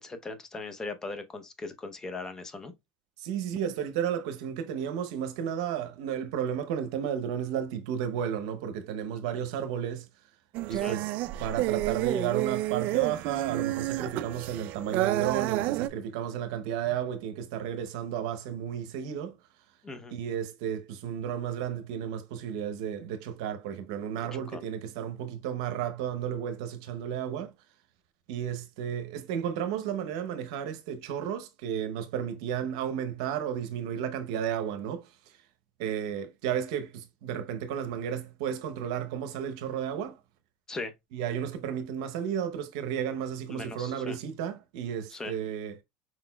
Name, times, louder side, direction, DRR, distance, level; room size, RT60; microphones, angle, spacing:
voice 1, 0.0-2.7 10.7-10.9 19.8-20.1 24.2-24.6 40.7-40.9 43.5-44.2 45.1-45.3, left 3 dB, 20° left, 0.7 m, -39 dB
voice 2, 3.2-10.1 10.7-11.1 11.4-19.3 20.1-27.5 28.3-35.1 35.8-40.2 41.1-45.8, right 9 dB, 75° right, 0.7 m, -33 dB
sound 1, 10.5-15.9, right 16 dB, 55° right, 0.3 m, -30 dB
4.4 x 4.1 x 2.2 m
supercardioid pair, 125°, 3 cm